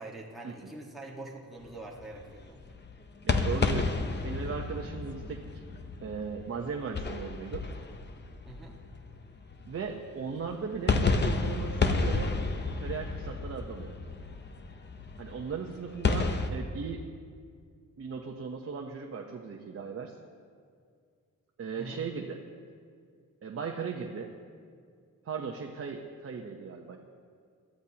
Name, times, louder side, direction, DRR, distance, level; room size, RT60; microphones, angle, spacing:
voice 1, 0.0-2.7 8.4-8.8 21.8-22.0, right 2 dB, ahead, -5 dB, 1.5 m, -44 dB
sound 1, 1.6-10.0 10.5-16.5, left 4 dB, 35° left, 0.8 m, -31 dB
voice 2, 3.2-5.6 6.0-7.7 9.6-12.4 12.8-13.9 15.2-17.1 18.0-20.1 21.6-22.4 23.4-24.3 25.2-27.0, right 5 dB, 50° right, 1 dB, 0.9 m, -37 dB
21.0 x 14.0 x 2.9 m, 2.1 s
wide cardioid pair, 145°, 31 cm